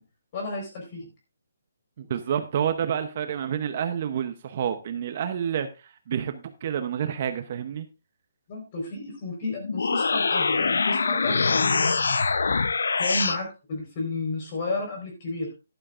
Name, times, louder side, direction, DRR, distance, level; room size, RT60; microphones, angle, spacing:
voice 1, 0.3-1.1 8.5-12.0 13.0-15.5, left 2 dB, 25° left, 1 dB, 4.2 m, -32 dB
voice 2, 2.0-7.9, right 8 dB, 35° right, 8 dB, 0.7 m, -29 dB
sound 1, 9.6-13.4, left 4 dB, 80° left, 0.7 m, -24 dB
12.5 x 11.5 x 2.5 m, 0.28 s
hypercardioid pair, 175°, 0 cm